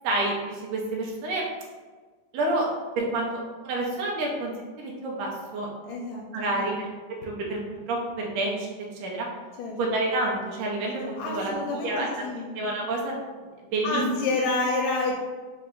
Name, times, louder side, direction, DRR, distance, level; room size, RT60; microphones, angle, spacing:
voice 1, 0.0-1.5 2.3-2.7 3.0-4.5 4.8-5.7 6.3-6.9 7.2-7.6 7.9-8.7 9.0-9.3 9.8-12.3 12.5-13.1 13.6-14.0, right 2 dB, 80° right, -2 dB, 2.2 m, -28 dB
voice 2, 5.9-6.2 6.6-6.7 9.6-9.8 11.2-12.5 13.8-15.2, left 3 dB, 85° left, -2 dB, 2.1 m, -28 dB
5.6 x 2.1 x 3.7 m, 1.4 s
omnidirectional pair, 3.7 m